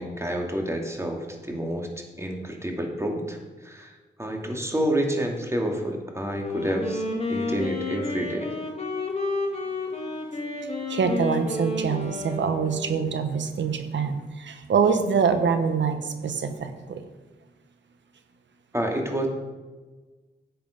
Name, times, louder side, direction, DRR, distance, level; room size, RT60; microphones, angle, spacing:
voice 1, 0.0-1.9 2.2-3.4 3.6-3.9 4.2-7.0 7.3-8.5 18.7-19.3, equal, 15° right, 2 dB, 2.3 m, -28 dB
Wind instrument woodwind instrument, 6.4-13.1, left 2 dB, 35° left, 2.6 m, -31 dB
voice 2, 10.9-17.0, right 6 dB, 75° right, 8 dB, 1.1 m, -25 dB
10.5 x 7.7 x 5.2 m, 1.3 s
cardioid pair, 65°, 19 cm